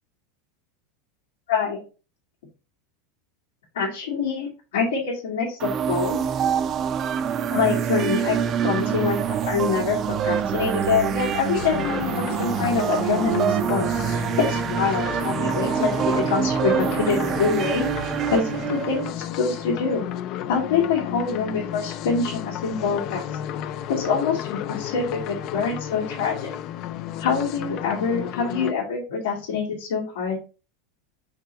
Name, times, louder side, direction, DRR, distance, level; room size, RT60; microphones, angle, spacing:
voice 1, 1.5-1.8 3.7-6.2 7.5-8.4 8.6-10.0 10.2-17.9 18.3-20.0 20.5-23.2 23.9-26.5 27.2-30.4, left 5 dB, 90° left, -5 dB, 2.5 m, -25 dB
sound 1, 5.6-19.1, right 8 dB, 30° right, 0.4 m, -25 dB
sound 2, 11.5-28.7, left 11 dB, 40° left, 0.4 m, -33 dB
5.9 x 3.8 x 4.6 m, 0.34 s
supercardioid pair, 155°, 0 cm